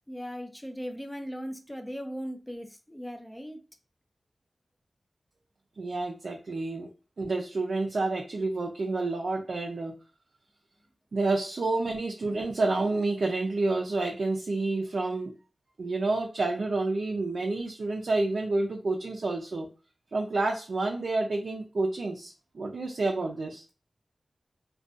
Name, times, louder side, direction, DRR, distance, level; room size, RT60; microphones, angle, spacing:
voice 1, 0.1-3.6, equal, 10° left, 0.4 m, -38 dB
voice 2, 5.8-6.9 7.2-10.0 11.1-15.3 15.8-19.7 20.1-23.6, right 2 dB, 70° right, 0.3 m, -29 dB
2.5 x 2.2 x 2.3 m
wide cardioid pair, 100°, 0 cm